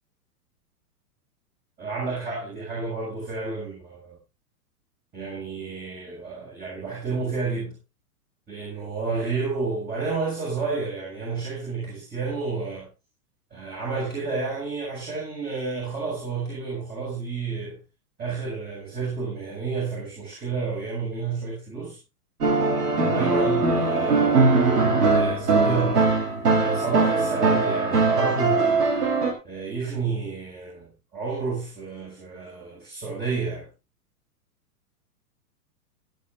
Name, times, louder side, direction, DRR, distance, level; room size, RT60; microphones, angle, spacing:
voice 1, 1.8-4.1 5.1-7.8 8.5-12.9 13.5-17.8 18.2-22.0 23.0-24.5 25.1-26.0 26.5-28.9 29.4-33.7, right 4 dB, 20° right, 7.2 m, -30 dB
sound 1, 22.4-29.3, right 3 dB, 85° right, 4.6 m, -21 dB
21.0 x 9.2 x 2.7 m
hypercardioid pair, 125°, 46 cm